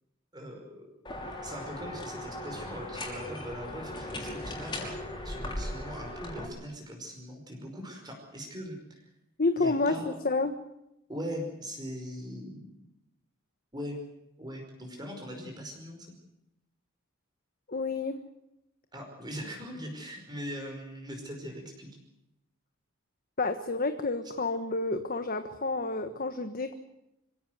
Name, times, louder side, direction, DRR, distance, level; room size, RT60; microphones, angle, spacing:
voice 1, 0.3-0.9 1.4-5.0 5.2-9.1 9.6-10.1 11.1-12.9 13.7-14.0 14.4-16.2 18.9-21.9, equal, 20° right, 2 dB, 5.3 m, -40 dB
sound 1, 1.0-6.4, left 1 dB, 20° left, 5.8 m, -38 dB
voice 2, 9.4-10.5 17.7-18.2 23.4-26.7, left 3 dB, 40° left, 8 dB, 1.4 m, -29 dB
26.0 x 17.0 x 8.0 m, 0.86 s
head